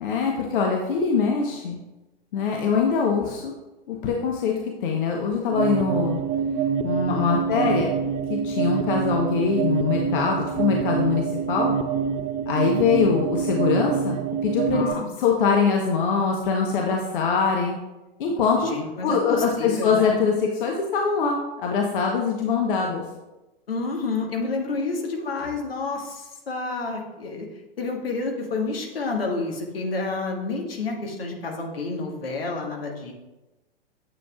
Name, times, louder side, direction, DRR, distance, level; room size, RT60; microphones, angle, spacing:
voice 1, 0.0-1.8 2.3-3.5 3.9-4.5 4.8-6.2 6.8-7.9 8.3-11.7 12.5-14.2 14.4-14.9 15.2-17.8 18.2-18.7 19.0-23.0, left 5 dB, 60° left, 0 dB, 1.1 m, -23 dB
sound 1, 5.5-14.9, right 7 dB, 35° right, 0.5 m, -26 dB
voice 2, 14.7-15.0 18.6-20.2 23.7-27.5 27.8-33.1, left 3 dB, 75° left, 1 dB, 1.7 m, -29 dB
9.4 x 7.5 x 2.4 m, 1.0 s
figure-of-eight pair, 95°, 30 cm